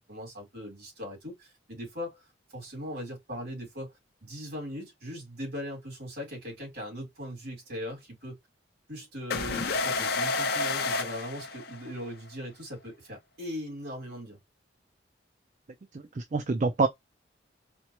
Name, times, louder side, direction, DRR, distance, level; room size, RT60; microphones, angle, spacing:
voice 1, 0.1-3.9 4.2-8.4 8.9-14.4, equal, 60° right, 2.5 m, -39 dB
sound 1, 9.3-12.1, left 3 dB, 60° left, 0.7 m, -30 dB
voice 2, 15.9-16.9, right 3 dB, 40° right, 0.4 m, -27 dB
4.3 x 2.1 x 2.9 m
head